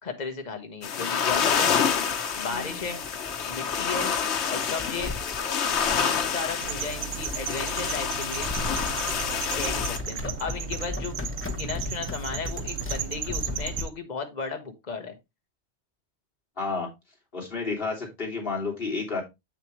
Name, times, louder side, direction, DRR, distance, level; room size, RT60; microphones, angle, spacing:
voice 1, 0.0-1.7 2.4-3.0 3.5-4.1 4.5-5.1 5.9-8.5 9.5-11.2 11.5-15.2, left 5 dB, 40° left, 5 dB, 1.4 m, -35 dB
sound 1, 0.8-10.0, left 7 dB, 85° left, 1.2 m, -28 dB
sound 2, 1.3-13.8, left 3 dB, 10° left, 0.9 m, -38 dB
voice 2, 2.5-2.8 16.6-16.9 17.3-19.2, left 4 dB, 55° left, -2 dB, 3.1 m, -31 dB
sound 3, 6.6-13.9, right 9 dB, 85° right, 1.0 m, -35 dB
7.5 x 6.9 x 3.1 m, 0.22 s
omnidirectional pair, 1.1 m